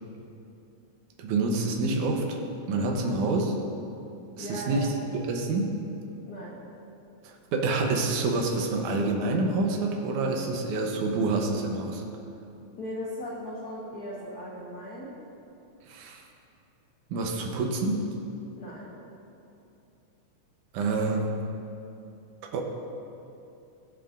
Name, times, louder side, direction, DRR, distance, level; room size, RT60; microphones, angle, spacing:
voice 1, 1.2-2.4 2.7-3.5 4.4-5.8 7.2-12.0 15.8-16.2 17.1-18.1 20.7-21.3 22.5-22.6, right 3 dB, 85° right, 2 dB, 2.4 m, -27 dB
voice 2, 2.9-3.2 4.4-4.9 6.3-6.6 12.8-15.1 18.6-18.9, equal, 55° left, -5 dB, 1.0 m, -38 dB
18.0 x 7.8 x 2.5 m, 2.7 s
omnidirectional pair, 3.5 m